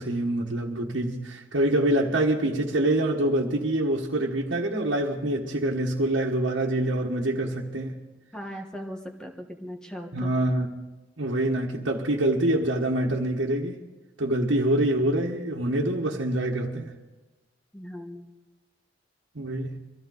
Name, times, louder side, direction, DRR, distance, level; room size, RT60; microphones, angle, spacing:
voice 1, 0.0-8.0 10.1-10.7 11.2-13.8 14.2-16.9 19.3-19.8, right 1 dB, 80° right, 1.5 m, -25 dB
voice 2, 8.3-10.3 17.7-18.3, equal, 5° left, 1.4 m, -38 dB
23.5 x 14.5 x 4.0 m
head